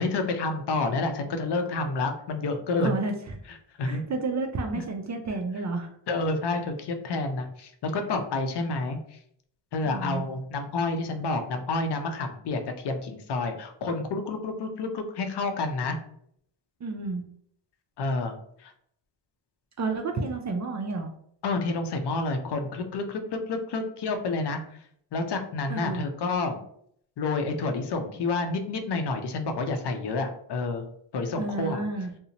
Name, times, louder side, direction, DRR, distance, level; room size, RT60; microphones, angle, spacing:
voice 1, 0.0-3.0 3.8-4.0 6.1-9.2 9.7-16.0 18.0-18.3 18.6-18.7 21.4-23.2 23.5-24.6 25.1-26.6 27.2-30.8 31.1-31.8, left 3 dB, 55° left, 5 dB, 0.6 m, -29 dB
voice 2, 2.8-3.4 3.8-5.9 7.1-7.2 9.9-10.2 16.8-17.2 19.8-21.1 25.7-26.0 31.4-32.1, right 3 dB, 40° right, 5 dB, 0.4 m, -31 dB
2.6 x 2.0 x 2.8 m, 0.67 s
cardioid pair, 60°, 49 cm